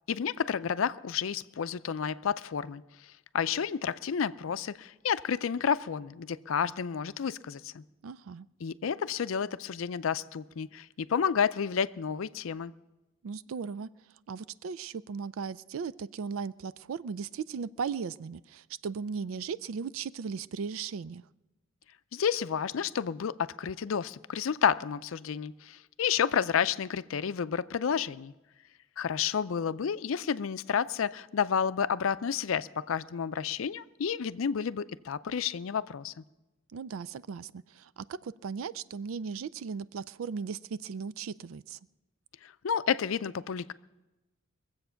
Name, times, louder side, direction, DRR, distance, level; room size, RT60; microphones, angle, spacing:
voice 1, 0.1-7.8 8.6-12.7 22.1-28.3 29.0-36.2 42.4-43.7, left 7 dB, 80° left, 15 dB, 0.5 m, -30 dB
voice 2, 8.0-8.5 13.2-13.9 14.3-21.2 36.7-41.8, right 5 dB, 90° right, 18 dB, 0.4 m, -37 dB
23.0 x 7.9 x 5.7 m, 1.0 s
head